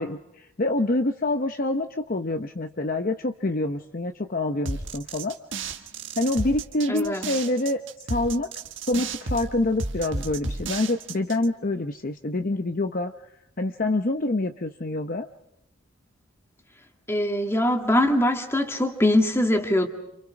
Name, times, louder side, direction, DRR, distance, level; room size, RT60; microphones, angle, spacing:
voice 1, 0.0-5.4 6.2-7.8 8.1-8.5 8.9-13.1 13.6-15.3, left 2 dB, 40° left, 6 dB, 0.8 m, -26 dB
sound 1, 4.6-11.5, right 3 dB, 60° right, 1.6 m, -33 dB
voice 2, 6.9-7.2 17.1-19.9, left 1 dB, 10° left, 3 dB, 2.3 m, -22 dB
30.0 x 28.0 x 4.9 m, 0.83 s
head